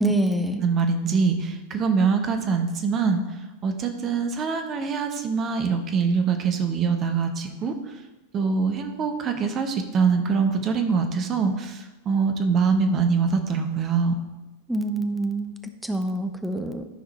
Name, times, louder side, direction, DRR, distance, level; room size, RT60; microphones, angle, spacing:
voice 1, 0.0-0.6 14.7-15.5 15.8-16.9, right 1 dB, 5° right, 6 dB, 0.9 m, -25 dB
voice 2, 0.6-8.0 8.3-14.2, right 5 dB, 30° right, 6 dB, 1.1 m, -24 dB
13.5 x 5.0 x 4.2 m, 1.1 s
figure-of-eight pair, 90°, 0 cm